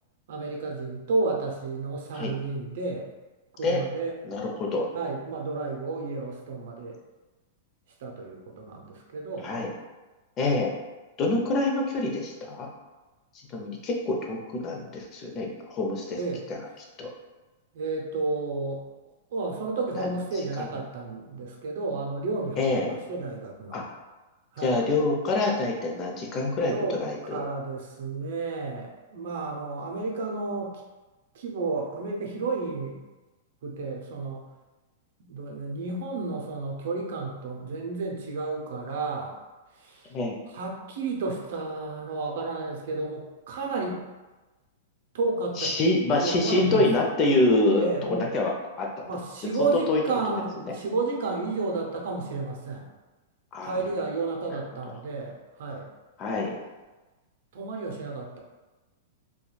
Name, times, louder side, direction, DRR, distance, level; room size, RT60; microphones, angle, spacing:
voice 1, 0.3-3.1 3.6-4.2 4.9-7.0 8.0-9.5 16.2-16.4 17.7-18.8 19.3-23.9 24.5-24.8 26.6-30.8 31.3-33.0 33.6-34.5 35.3-39.4 39.7-40.1 40.5-44.0 45.1-45.7 46.2-46.9 47.8-48.3 49.1-52.9 53.6-55.9 57.5-58.4, right 3 dB, 70° right, 1 dB, 0.6 m, -32 dB
voice 2, 4.3-4.9 9.4-9.7 10.4-10.8 11.2-12.7 13.5-16.2 17.0-17.1 20.6-20.7 22.6-23.0 23.7-23.8 24.6-27.4 40.1-40.4 45.6-47.9 48.3-48.5 48.8-48.9 49.9-50.0 53.5-53.8 56.2-56.6, left 2 dB, 35° left, 0 dB, 0.5 m, -26 dB
3.0 x 2.2 x 2.3 m, 1.2 s
hypercardioid pair, 115°, 0 cm